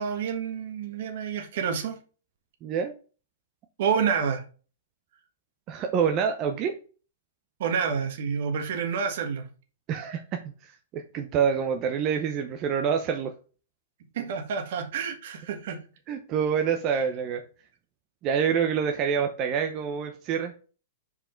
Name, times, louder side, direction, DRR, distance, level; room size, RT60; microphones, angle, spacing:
voice 1, 0.0-2.0 3.8-4.4 7.6-9.5 14.1-15.8, right 6 dB, 65° right, 1.5 m, -28 dB
voice 2, 2.6-2.9 5.7-6.7 9.9-10.2 10.6-13.3 16.1-17.4 18.2-20.5, right 7 dB, 35° right, 0.8 m, -26 dB
5.6 x 4.8 x 4.4 m
hypercardioid pair, 130°, 0 cm